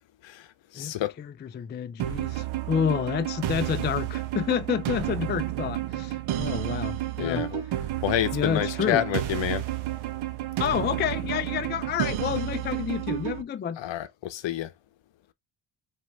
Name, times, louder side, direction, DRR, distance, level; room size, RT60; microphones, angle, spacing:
voice 1, 0.2-1.2 7.2-7.6 8.0-9.7 13.8-14.7, left 12 dB, 60° left, 0.8 m, -29 dB
voice 2, 0.7-7.4 8.3-9.0 10.6-13.8, left 8 dB, 25° left, 0.3 m, -29 dB
sound 1, 2.0-13.4, right 14 dB, 70° right, 0.8 m, -31 dB
4.3 x 2.6 x 3.8 m
supercardioid pair, 70°, 50 cm